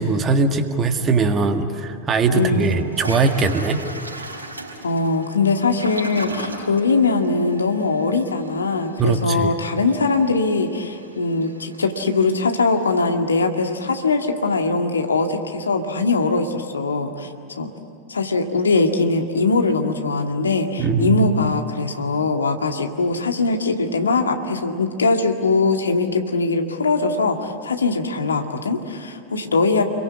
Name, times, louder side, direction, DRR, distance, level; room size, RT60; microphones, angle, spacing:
voice 1, 0.0-3.8 4.2-4.3 9.0-9.5 20.8-21.3, right 4 dB, 25° right, 7 dB, 1.9 m, -20 dB
Toilet flush, 1.7-1.8 2.3-13.1, right 1 dB, 80° right, 4.4 m, -38 dB
voice 2, 2.3-2.8 4.8-17.3 17.6-17.7 18.1-29.8, left 3 dB, 75° left, 5 dB, 2.0 m, -21 dB
30.0 x 23.0 x 8.4 m, 2.5 s
figure-of-eight pair, 90°, 0 cm